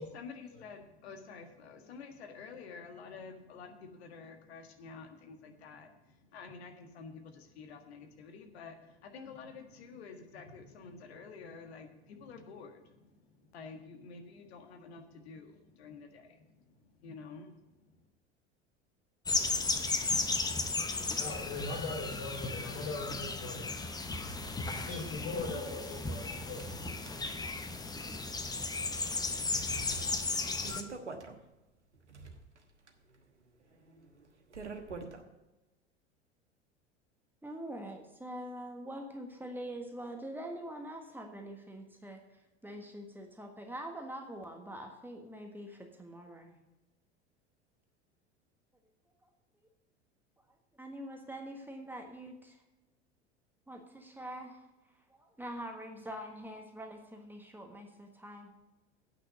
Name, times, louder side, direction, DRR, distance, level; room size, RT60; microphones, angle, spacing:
voice 1, 0.0-18.0, left 5 dB, 65° left, 5 dB, 1.7 m, -50 dB
sound 1, 19.3-30.8, left 3 dB, 10° left, 0.9 m, -35 dB
voice 2, 21.2-23.7 24.6-26.7, left 3 dB, 45° left, 0 dB, 4.1 m, -40 dB
sound 2, 23.2-23.3 23.5-23.6 24.3-27.7 28.0-28.1 28.7-29.1 29.5-31.4 31.9-35.2, right 3 dB, 85° right, 1.3 m, -47 dB
voice 3, 37.4-42.2 42.6-46.6 50.8-52.6 53.7-54.7 55.1-58.5, right 1 dB, 5° right, 2 dB, 1.4 m, -44 dB
8.8 x 6.1 x 8.2 m, 1.0 s
figure-of-eight pair, 80°, 34 cm